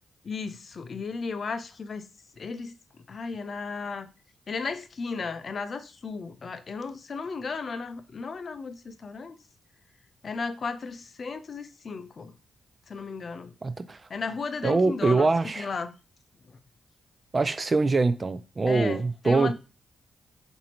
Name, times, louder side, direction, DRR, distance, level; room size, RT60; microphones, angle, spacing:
voice 1, 0.2-2.1 2.4-2.7 3.1-4.1 4.5-9.4 10.2-12.3 12.9-13.5 14.1-15.3 15.6-15.9 18.7-19.5, left 4 dB, 55° left, 0.5 m, -34 dB
voice 2, 13.6-14.0 14.6-15.7 17.3-19.5, right 3 dB, 40° right, 0.4 m, -24 dB
4.0 x 2.6 x 3.0 m
hypercardioid pair, 40°, 0 cm